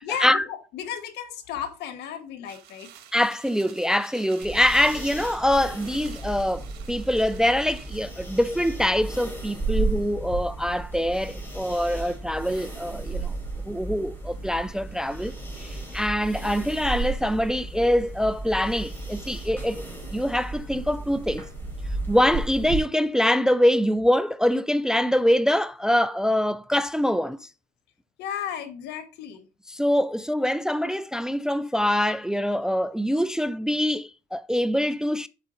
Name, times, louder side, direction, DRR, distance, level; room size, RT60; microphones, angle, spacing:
voice 1, 0.0-2.9 28.2-29.5, left 8 dB, 80° left, 1.3 m, -34 dB
sound 1, 2.4-8.0, right 10 dB, 75° right, 1.5 m, -49 dB
voice 2, 3.1-13.4 13.7-21.5 22.1-27.5 29.7-35.3, equal, 5° right, 0.3 m, -24 dB
sound 2, 4.4-22.8, right 3 dB, 10° left, 3.5 m, -34 dB
8.2 x 5.3 x 3.7 m
cardioid pair, 110°, 17 cm